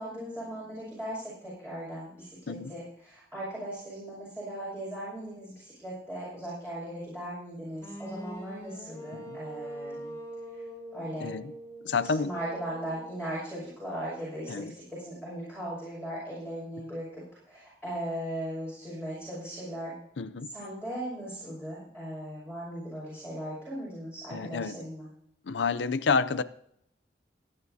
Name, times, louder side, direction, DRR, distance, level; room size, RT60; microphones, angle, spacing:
voice 1, 0.0-10.2 10.9-11.3 12.0-19.9 20.4-25.1, right 1 dB, 10° right, 6.2 m, -38 dB
sound 1, 7.8-13.7, right 1 dB, 15° left, 3.2 m, -43 dB
voice 2, 11.8-12.3 14.5-14.7 20.2-20.5 24.3-24.8 25.5-26.4, left 5 dB, 90° left, 0.5 m, -29 dB
29.0 x 9.7 x 2.8 m
head